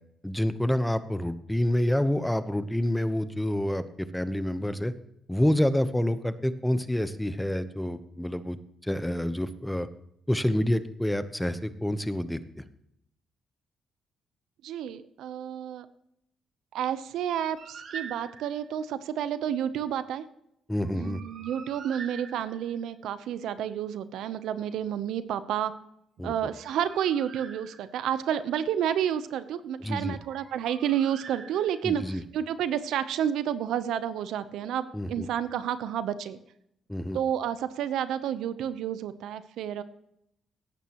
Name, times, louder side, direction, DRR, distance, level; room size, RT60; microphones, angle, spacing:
voice 1, 0.2-4.9 5.3-9.9 10.3-12.6 20.7-21.2 26.2-26.3 29.8-30.2 31.8-32.2 34.9-35.3 36.9-37.2, left 1 dB, 5° left, 12 dB, 0.9 m, -28 dB
voice 2, 14.6-15.9 16.7-20.3 20.9-25.7 26.2-36.4 37.1-39.8, right 9 dB, 80° right, 14 dB, 0.8 m, -30 dB
Bird, 17.6-18.7 20.8-22.9 26.3-28.2 30.1-32.1, right 6 dB, 55° right, 1.9 m, -45 dB
18.0 x 9.0 x 3.0 m, 0.77 s
cardioid pair, 90°, 0 cm